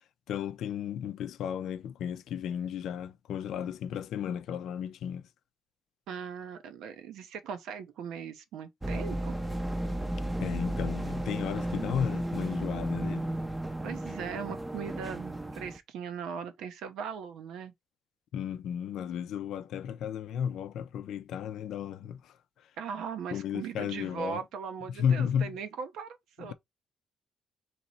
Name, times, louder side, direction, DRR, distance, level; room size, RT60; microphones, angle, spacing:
voice 1, 0.3-5.3 10.4-13.3 18.3-22.2 23.3-24.4 24.9-25.5, left 8 dB, 80° left, 0.4 m, -33 dB
voice 2, 6.1-9.4 13.8-17.7 22.8-26.5, right 7 dB, 85° right, 0.7 m, -39 dB
sound 1, 8.8-15.8, right 1 dB, 15° right, 0.5 m, -34 dB
3.0 x 2.9 x 3.9 m
cardioid pair, 90°, 0 cm